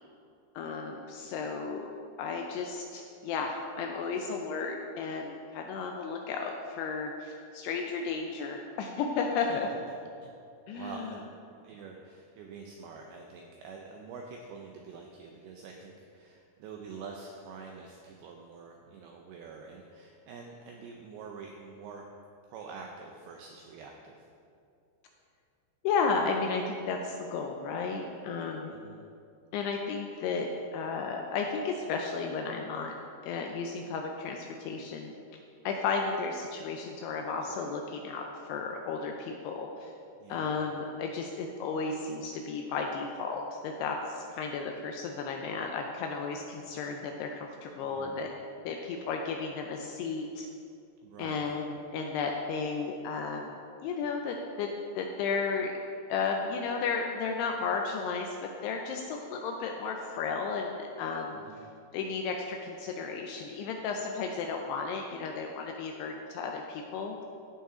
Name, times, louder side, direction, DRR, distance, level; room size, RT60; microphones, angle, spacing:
voice 1, 0.6-1.9 2.2-9.7 10.7-11.1 25.8-28.7 29.5-32.9 33.2-35.1 35.7-39.9 40.3-48.3 48.7-50.5 51.2-53.5 53.8-55.8 56.1-61.4 61.9-67.2, left 5 dB, 85° left, 2 dB, 2.4 m, -33 dB
voice 2, 10.7-11.2 11.5-22.0 22.5-24.3 28.7-29.0 40.2-40.5 47.8-48.1 51.0-51.6 61.3-61.7, right 5 dB, 85° right, 1 dB, 2.2 m, -46 dB
15.5 x 5.6 x 3.7 m, 2.5 s
omnidirectional pair, 5.2 m